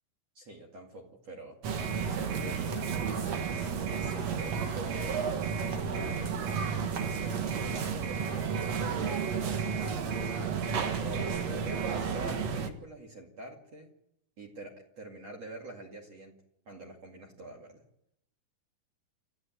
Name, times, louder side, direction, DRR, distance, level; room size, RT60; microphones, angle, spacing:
voice 1, 0.3-5.2 5.6-6.3 6.9-10.1 10.4-13.9 14.4-16.3 16.7-17.8, right 1 dB, 40° right, 0 dB, 2.7 m, -46 dB
sound 1, 1.6-12.7, right 6 dB, 65° right, 1.7 m, -32 dB
sound 2, 1.8-12.0, right 7 dB, 85° right, 6.6 m, -42 dB
28.5 x 14.0 x 9.3 m, 0.81 s
omnidirectional pair, 5.4 m